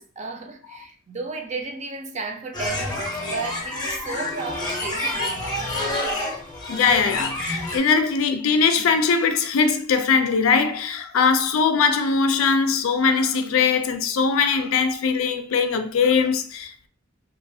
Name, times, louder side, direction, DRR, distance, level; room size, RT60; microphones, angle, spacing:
voice 1, 0.0-5.8, right 3 dB, 35° right, 0.5 m, -34 dB
sound 1, 2.5-7.8, left 1 dB, 20° left, 0.6 m, -28 dB
voice 2, 6.7-16.9, left 5 dB, 80° left, 0.4 m, -21 dB
2.9 x 2.3 x 2.6 m
head